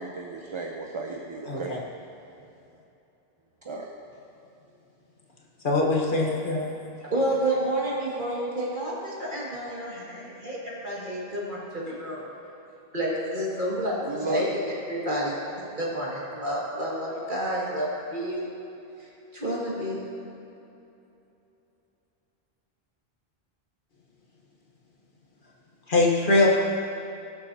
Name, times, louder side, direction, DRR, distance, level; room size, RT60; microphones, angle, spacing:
voice 1, 0.0-1.7 3.6-3.9 14.0-14.5, right 4 dB, 35° right, 1 dB, 0.6 m, -34 dB
voice 2, 1.5-1.8 5.6-6.7 25.9-26.5, left 2 dB, 55° left, -2 dB, 1.4 m, -22 dB
voice 3, 7.0-12.2 12.9-18.5 19.3-20.0, right 1 dB, 50° right, -6 dB, 2.3 m, -30 dB
19.0 x 7.1 x 2.8 m, 2.9 s
omnidirectional pair, 1.1 m